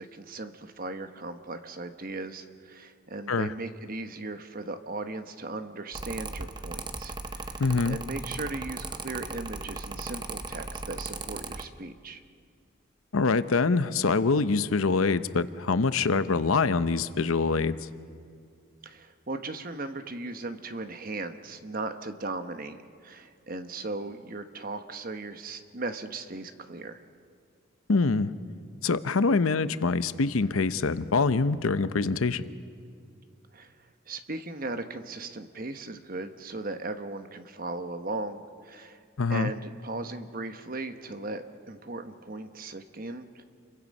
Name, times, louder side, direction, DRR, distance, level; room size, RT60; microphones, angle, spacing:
voice 1, 0.0-12.2 18.8-27.0 33.5-33.7 34.1-39.0 39.3-43.4, right 2 dB, 45° right, 8 dB, 1.1 m, -37 dB
Mechanical fan, 5.9-11.7, right 3 dB, 20° right, 0.8 m, -37 dB
voice 2, 7.6-8.0 13.1-17.8 27.9-28.3 28.8-32.4 39.2-39.5, left 4 dB, 90° left, 13 dB, 0.7 m, -25 dB
28.0 x 23.0 x 5.4 m, 2.3 s
head